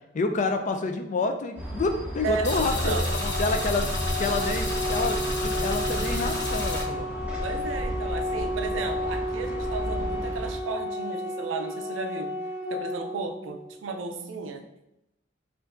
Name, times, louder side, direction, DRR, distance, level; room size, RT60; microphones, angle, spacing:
voice 1, 0.1-3.0 3.2-3.9 4.2-7.1, left 3 dB, 40° left, 6 dB, 0.4 m, -28 dB
sound 1, 1.6-10.5, equal, 5° right, 0.8 m, -34 dB
voice 2, 2.2-3.1 7.4-12.3 12.7-14.6, right 4 dB, 80° right, 5 dB, 0.5 m, -34 dB
sound 2, 2.4-6.8, left 1 dB, 65° left, 1.2 m, -31 dB
Organ, 2.7-13.7, left 1 dB, 30° right, 1.1 m, -32 dB
5.2 x 2.5 x 2.5 m, 0.88 s
head